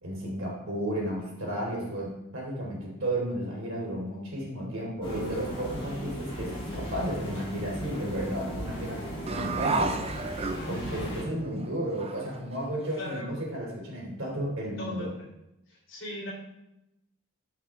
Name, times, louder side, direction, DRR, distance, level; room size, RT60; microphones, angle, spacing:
voice 1, 0.0-10.0 10.7-15.1, right 1 dB, 60° right, -3 dB, 3.4 m, -33 dB
sound 1, 5.0-11.2, equal, 25° left, 3.9 m, -37 dB
sound 2, 9.3-11.1 11.6-11.7 12.0-13.2, right 3 dB, 25° right, 0.5 m, -31 dB
voice 2, 10.5-11.1 12.9-13.3 14.8-15.3 15.7-16.3, left 1 dB, 50° left, -3 dB, 3.9 m, -39 dB
14.0 x 5.6 x 3.7 m, 0.89 s
head